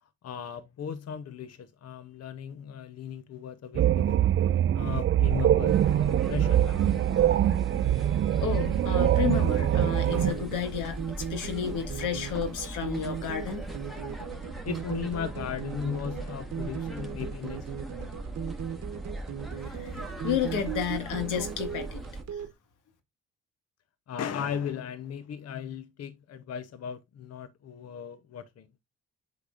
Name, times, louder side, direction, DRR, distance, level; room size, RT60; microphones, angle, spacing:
voice 1, 0.0-6.8 14.6-17.7 24.1-28.7, left 8 dB, 55° left, 0.9 m, -37 dB
sound 1, 3.7-10.3, right 11 dB, 40° right, 0.4 m, -24 dB
sound 2, 5.7-22.2, right 2 dB, ahead, 2.0 m, -39 dB
voice 2, 8.4-13.9 19.5-22.0 22.3-22.4, left 8 dB, 85° left, 1.9 m, -32 dB
sound 3, 9.6-22.5, right 8 dB, 60° right, 1.0 m, -38 dB
8.3 x 6.6 x 2.6 m
cardioid pair, 90°, 30 cm